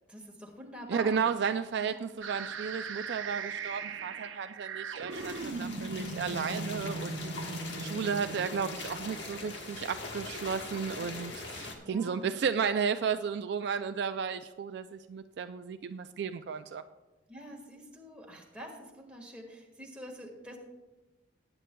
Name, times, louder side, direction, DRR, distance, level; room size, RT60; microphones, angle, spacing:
voice 1, 0.1-1.3 1.9-2.1 6.8-7.2 8.0-8.6 10.9-12.3 17.3-20.6, equal, 5° right, -1 dB, 1.6 m, -47 dB
voice 2, 0.9-7.1 7.8-16.8, right 6 dB, 60° right, 9 dB, 0.3 m, -33 dB
sound 1, 2.2-10.1, right 4 dB, 85° right, 0.7 m, -39 dB
sound 2, 5.1-11.7, left 3 dB, 65° left, 1.4 m, -42 dB
18.5 x 8.8 x 2.3 m, 1.1 s
head